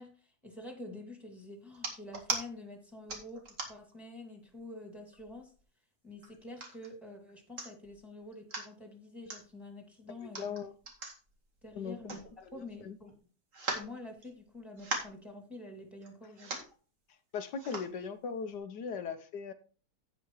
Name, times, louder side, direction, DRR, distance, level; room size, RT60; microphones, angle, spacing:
voice 1, 0.0-5.5 6.0-10.5 11.6-12.2 12.5-13.2 13.7-16.6, left 2 dB, ahead, 2.6 m, -47 dB
sound 1, 1.7-2.4 3.1-3.9 4.5-4.6 5.0-5.6 6.2-6.9 7.3-7.4 7.6-7.9 8.3-8.7 9.3-9.4 10.2-12.7 13.0-13.1 13.5-14.5 14.8-15.2 16.0-16.1 16.3-16.7 17.6-17.9 18.5-18.6, right 2 dB, 50° right, 2.4 m, -39 dB
voice 2, 10.2-10.7 11.8-12.0 12.4-12.5 12.8-13.0 17.3-19.5, left 6 dB, 85° left, 1.5 m, -38 dB
16.5 x 5.7 x 3.1 m
omnidirectional pair, 1.8 m